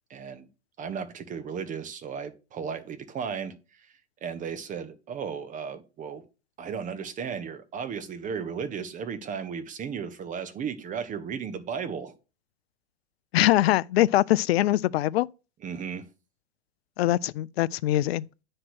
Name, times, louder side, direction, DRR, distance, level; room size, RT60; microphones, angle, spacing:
voice 1, 0.1-0.5 0.8-6.2 6.6-12.1 15.6-16.1, right 6 dB, 25° right, 1.0 m, -35 dB
voice 2, 13.3-15.3 17.0-18.3, left 15 dB, 65° left, 0.5 m, -23 dB
9.7 x 3.3 x 6.1 m
hypercardioid pair, 115°, 34 cm